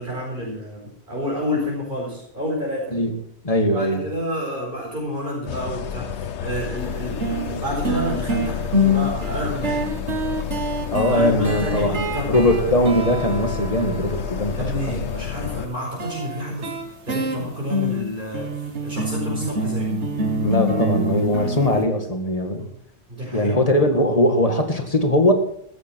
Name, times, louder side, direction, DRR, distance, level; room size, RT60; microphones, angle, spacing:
voice 1, 0.0-2.9 3.7-9.9 11.1-12.8 14.5-16.7 17.0-18.5 18.8-19.9 22.6-22.7 23.1-23.5, equal, 45° right, -4 dB, 4.9 m, -29 dB
voice 2, 3.4-4.0 10.9-14.6 14.9-15.0 20.4-22.7 23.3-25.3, left 1 dB, 30° left, 5 dB, 1.9 m, -20 dB
sound 1, 5.5-15.7, left 9 dB, 70° left, 1.0 m, -30 dB
sound 2, 6.8-6.9 7.2-14.5 16.0-21.8, equal, 65° right, 1.9 m, -26 dB
15.0 x 13.5 x 4.6 m, 0.66 s
omnidirectional pair, 1.2 m